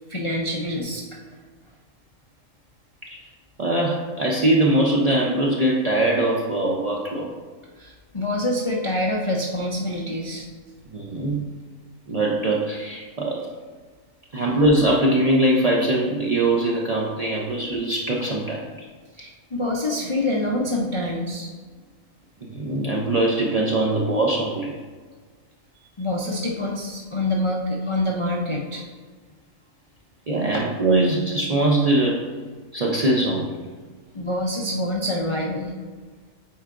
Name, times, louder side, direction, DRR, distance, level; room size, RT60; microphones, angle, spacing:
voice 1, 0.1-1.1 7.8-10.5 14.3-14.5 19.2-21.5 26.0-28.8 30.5-30.7 34.1-35.7, left 1 dB, 50° left, -1 dB, 0.3 m, -26 dB
voice 2, 3.6-7.3 10.9-11.4 12.1-13.5 14.3-18.6 19.9-20.0 22.5-24.8 30.3-32.2 32.7-33.5, right 1 dB, 50° right, -3 dB, 0.4 m, -22 dB
8.4 x 4.5 x 2.5 m, 1.5 s
omnidirectional pair, 1.4 m